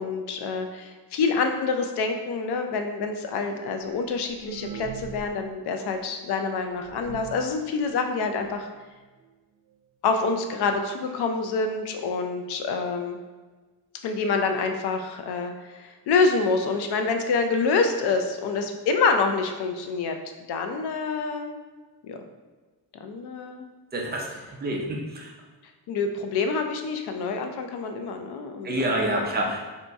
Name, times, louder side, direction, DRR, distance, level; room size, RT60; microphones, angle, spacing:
voice 1, 0.0-8.7 10.0-13.2 14.0-20.2 20.5-21.6 22.0-22.2 23.0-23.7 25.9-29.3, left 4 dB, 85° left, 5 dB, 0.6 m, -27 dB
sound 1, 3.8-5.5 5.7-5.8 6.4-6.5 6.8-7.5 8.2-8.3 8.6-8.7 9.0-9.3 10.1-10.2 10.5-10.6 11.2-11.3 11.6-11.7, right 8 dB, 85° right, 0.6 m, -40 dB
voice 2, 23.9-25.3 28.6-29.6, right 1 dB, 25° right, -1 dB, 0.5 m, -28 dB
4.1 x 2.7 x 3.4 m, 1.3 s
wide cardioid pair, 170°, 38 cm